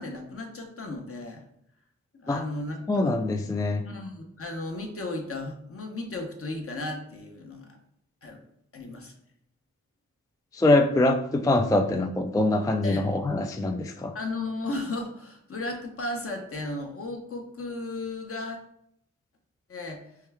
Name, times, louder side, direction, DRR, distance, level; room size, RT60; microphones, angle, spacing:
voice 1, 0.0-1.4 2.2-3.1 3.8-7.8 8.2-8.4 8.7-9.1 12.8-13.3 14.1-18.6 19.7-20.0, left 2 dB, 50° left, 2 dB, 0.9 m, -35 dB
voice 2, 2.9-3.8 10.5-14.1, left 2 dB, 10° left, 5 dB, 0.3 m, -24 dB
4.6 x 2.3 x 3.4 m, 0.72 s
cardioid pair, 60°, 29 cm